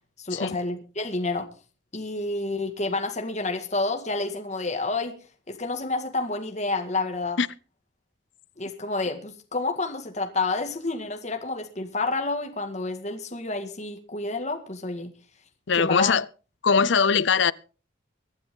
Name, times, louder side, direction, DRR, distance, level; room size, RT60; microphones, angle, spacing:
voice 1, 0.2-1.5 1.9-5.2 5.5-7.4 8.6-15.1 15.7-16.1, left 3 dB, 35° left, 2.0 m, -29 dB
voice 2, 15.7-16.3 16.6-17.5, left 6 dB, 70° left, 0.6 m, -21 dB
24.0 x 9.7 x 3.8 m
head